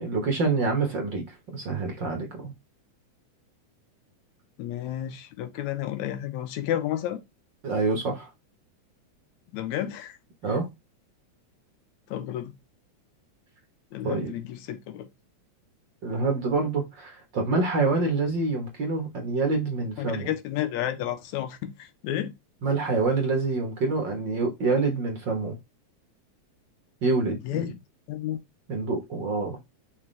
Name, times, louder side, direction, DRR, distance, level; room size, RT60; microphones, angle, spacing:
voice 1, 0.0-2.5 7.6-8.3 10.4-10.7 14.0-14.3 16.0-20.3 22.6-25.6 27.0-27.7 28.7-29.6, right 3 dB, 50° right, 1.5 m, -26 dB
voice 2, 4.6-7.2 9.5-10.2 12.1-12.5 13.9-15.1 20.0-22.3 27.4-27.7 28.1-28.4, left 11 dB, 80° left, 2.1 m, -31 dB
5.8 x 4.9 x 3.2 m
omnidirectional pair, 3.4 m